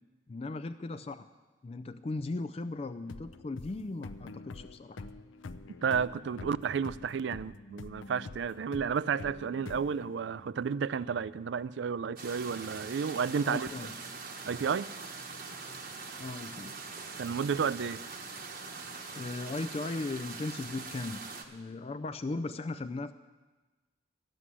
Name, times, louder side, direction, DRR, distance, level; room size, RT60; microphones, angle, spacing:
voice 1, 0.3-1.3 1.6-5.1 13.4-13.9 16.2-16.8 19.1-21.2 21.5-23.1, left 2 dB, 30° left, 0.3 m, -37 dB
sound 1, 3.1-10.7, left 3 dB, 80° left, 0.5 m, -46 dB
voice 2, 5.8-13.7 14.5-14.9 17.2-18.0, right 6 dB, 65° right, 0.4 m, -32 dB
sound 2, 12.2-21.4, right 4 dB, 45° right, 1.1 m, -43 dB
12.5 x 7.6 x 9.8 m
head